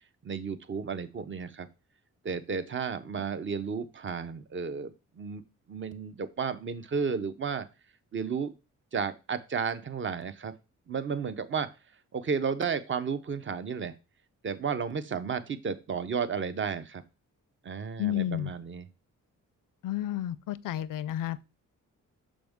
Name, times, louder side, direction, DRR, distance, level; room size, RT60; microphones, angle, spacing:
voice 1, 0.2-1.7 2.2-5.4 5.7-7.7 8.1-8.5 8.9-10.5 10.9-11.7 12.1-13.9 14.4-17.0 17.6-18.9, right 6 dB, 40° right, 0.7 m, -33 dB
voice 2, 18.0-18.5 19.8-21.4, left 12 dB, 85° left, 0.5 m, -31 dB
6.2 x 5.1 x 3.5 m
cardioid pair, 95°, 32 cm